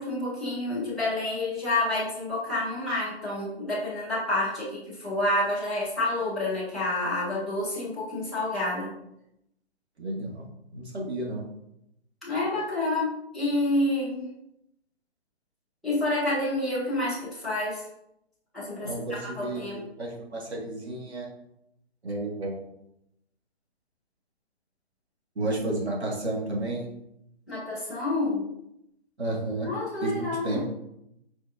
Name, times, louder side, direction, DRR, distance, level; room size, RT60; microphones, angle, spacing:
voice 1, 0.0-8.9 12.2-14.3 15.8-17.8 18.5-19.8 27.5-28.4 29.6-30.6, left 2 dB, ahead, -14 dB, 0.3 m, -28 dB
voice 2, 10.0-10.5 10.7-11.4 18.8-21.3 22.0-22.6 25.4-26.9 29.2-29.7 30.0-30.7, right 2 dB, 80° right, -2 dB, 1.8 m, -32 dB
4.7 x 4.5 x 2.5 m, 0.80 s
figure-of-eight pair, 145°, 32 cm